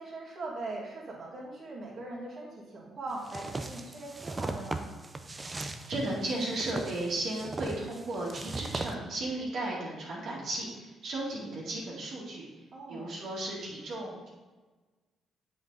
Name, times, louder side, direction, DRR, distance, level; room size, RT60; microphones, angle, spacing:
voice 1, 0.0-4.9 12.7-13.1, right 2 dB, 45° right, -5 dB, 2.2 m, -40 dB
sound 1, 3.2-8.9, right 2 dB, 25° right, 0.6 m, -38 dB
voice 2, 5.5-12.5 12.9-14.3, right 2 dB, 65° right, -5 dB, 2.2 m, -35 dB
7.5 x 5.3 x 4.0 m, 1.3 s
cardioid pair, 90°, 0 cm